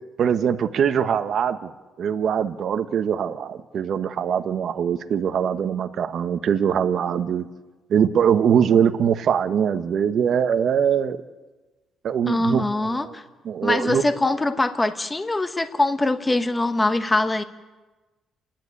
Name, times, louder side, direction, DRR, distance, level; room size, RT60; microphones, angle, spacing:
voice 1, 0.2-1.7 2.0-7.5 7.9-11.2 12.0-13.2 13.4-14.0, right 8 dB, 55° right, 9 dB, 1.0 m, -22 dB
voice 2, 12.3-13.2 13.6-17.4, left 2 dB, 15° left, 9 dB, 1.1 m, -23 dB
30.0 x 10.5 x 9.5 m, 1.2 s
cardioid pair, 140°, 0 cm